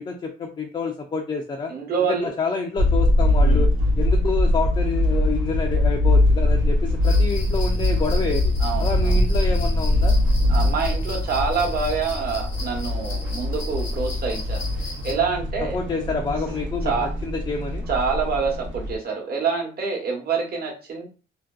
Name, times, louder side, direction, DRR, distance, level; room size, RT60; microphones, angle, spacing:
voice 1, 0.0-1.7 2.1-3.7 4.0-8.5 8.8-10.1 15.7-17.8, left 4 dB, 25° left, 1 dB, 0.4 m, -28 dB
voice 2, 1.7-2.3 3.4-3.7 8.6-9.1 10.5-15.8 16.8-17.1 17.9-21.1, right 5 dB, 50° right, 0 dB, 1.0 m, -26 dB
sound 1, 2.8-19.0, left 1 dB, 70° right, 0.7 m, -22 dB
sound 2, 7.0-15.1, left 2 dB, 85° left, 0.9 m, -39 dB
2.5 x 2.2 x 2.3 m, 0.34 s
cardioid pair, 90°, 20 cm